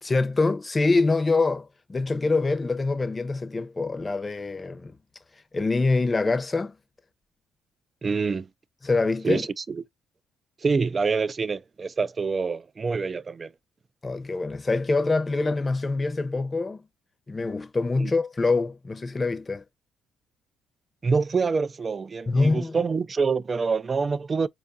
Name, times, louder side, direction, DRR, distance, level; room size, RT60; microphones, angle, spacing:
voice 1, 0.0-4.9 5.5-6.7 8.8-9.5 14.0-16.8 17.3-19.6 22.3-22.7, left 3 dB, 25° left, 0.7 m, -25 dB
voice 2, 8.0-8.5 9.2-9.8 10.6-13.5 18.0-18.1 21.0-24.5, right 4 dB, 35° right, 0.3 m, -26 dB
4.4 x 2.3 x 2.6 m
cardioid pair, 100°, 0 cm